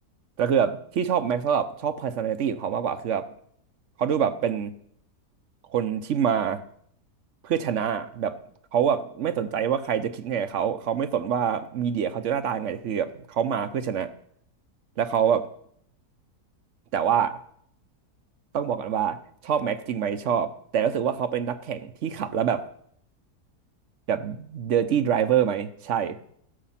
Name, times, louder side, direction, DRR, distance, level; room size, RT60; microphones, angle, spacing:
voice 1, 0.4-3.3 4.0-4.7 5.7-6.6 7.4-8.4 8.7-14.1 15.0-15.5 16.9-17.4 18.5-19.2 19.4-22.6 24.1-26.2, right 8 dB, 60° right, 11 dB, 0.9 m, -25 dB
15.0 x 6.8 x 5.7 m, 0.66 s
omnidirectional pair, 1.7 m